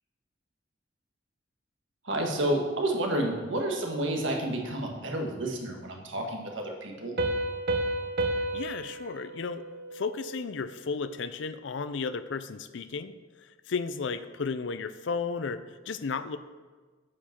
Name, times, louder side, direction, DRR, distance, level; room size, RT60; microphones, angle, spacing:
voice 1, 2.0-7.1, right 1 dB, 80° right, 1 dB, 1.5 m, -30 dB
Piano, 7.2-10.6, right 1 dB, 55° right, 0.8 m, -32 dB
voice 2, 8.5-9.6 9.9-13.1 13.7-16.4, left 5 dB, 70° left, 13 dB, 0.5 m, -33 dB
8.5 x 5.1 x 5.8 m, 1.4 s
head